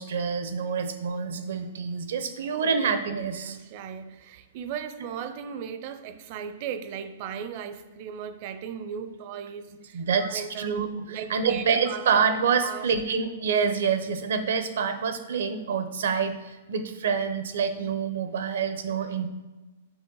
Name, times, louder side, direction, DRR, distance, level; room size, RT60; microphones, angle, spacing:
voice 1, 0.0-3.6 9.9-19.3, right 6 dB, 75° right, 0.8 m, -27 dB
voice 2, 3.4-10.7 11.1-12.9, right 8 dB, 45° right, 0.6 m, -37 dB
8.0 x 6.5 x 3.9 m
hypercardioid pair, 150°, 0 cm